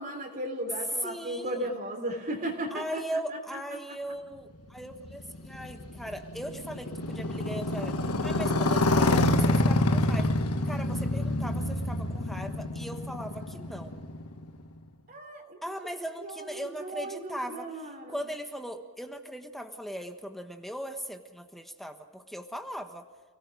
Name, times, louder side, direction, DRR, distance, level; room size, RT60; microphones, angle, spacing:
voice 1, 0.0-3.0 15.1-15.6 16.2-18.2, right 1 dB, 40° right, 1 dB, 3.3 m, -35 dB
voice 2, 1.0-1.7 2.7-7.9 8.2-10.3 10.7-13.9 15.6-23.1, equal, ahead, 5 dB, 1.3 m, -39 dB
Motorcycle, 4.8-14.7, left 2 dB, 80° left, 1.4 m, -27 dB
29.5 x 18.0 x 5.0 m, 1.4 s
head